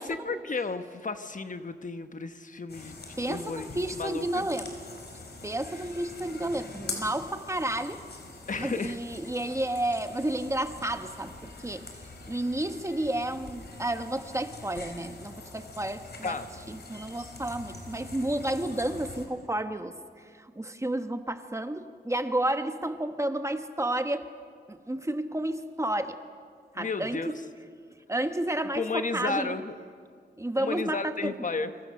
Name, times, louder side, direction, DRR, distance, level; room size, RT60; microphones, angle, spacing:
voice 1, 0.0-3.7 3.9-4.5 8.5-9.0 16.2-16.6 26.7-27.3 28.8-29.8 30.6-31.7, left 4 dB, 45° left, 9 dB, 1.2 m, -33 dB
sound 1, 2.7-19.3, left 3 dB, 70° left, 4.2 m, -44 dB
voice 2, 3.2-4.7 5.4-8.0 8.6-11.9 12.3-16.4 16.7-24.3 24.7-26.2 26.7-27.4 28.1-29.5 30.4-31.5, right 1 dB, 15° right, 8 dB, 1.3 m, -31 dB
29.0 x 25.5 x 6.5 m, 2.1 s
wide cardioid pair, 105°, 18 cm